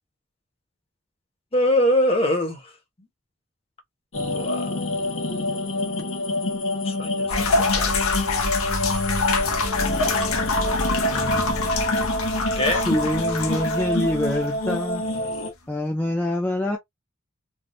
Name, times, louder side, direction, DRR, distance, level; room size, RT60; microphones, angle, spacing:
voice 1, 1.5-2.7 4.3-4.7 6.8-7.9 12.5-12.9, left 1 dB, 25° left, 0.9 m, -24 dB
sound 1, 4.1-15.5, left 1 dB, 70° left, 1.2 m, -27 dB
sound 2, 7.3-14.9, left 3 dB, 90° left, 1.0 m, -26 dB
voice 2, 11.1-11.6 12.7-15.0 15.7-16.8, left 1 dB, 10° left, 0.5 m, -26 dB
3.5 x 2.3 x 2.6 m
head